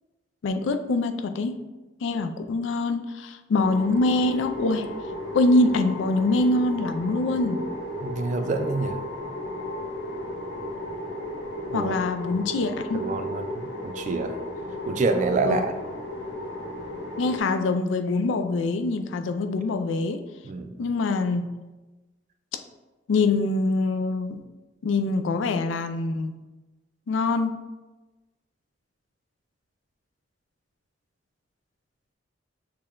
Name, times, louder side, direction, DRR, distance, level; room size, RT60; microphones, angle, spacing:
voice 1, 0.4-1.6 2.0-4.9 5.3-7.6 11.7-13.0 15.5-15.6 17.2-20.2 20.8-21.5 23.1-24.4 24.8-26.3 27.1-27.6, left 2 dB, 80° left, 7 dB, 0.4 m, -24 dB
sound 1, 3.6-17.4, left 1 dB, 65° left, 0.9 m, -35 dB
voice 2, 8.0-9.0 11.7-12.0 12.6-14.4 14.9-15.7 20.4-20.8, right 3 dB, 40° right, 7 dB, 0.3 m, -27 dB
6.5 x 2.2 x 3.6 m, 1.1 s
head